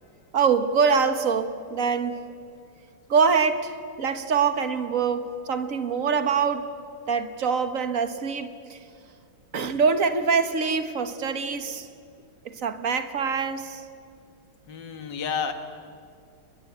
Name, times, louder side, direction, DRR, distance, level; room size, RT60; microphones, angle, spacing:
voice 1, 0.3-2.2 3.1-6.7 7.1-8.8 9.5-11.9 12.4-13.8, right 5 dB, 45° right, 9 dB, 1.7 m, -24 dB
voice 2, 14.7-15.5, left 6 dB, 65° left, 7 dB, 2.4 m, -30 dB
29.5 x 21.0 x 8.4 m, 2.3 s
omnidirectional pair, 2.1 m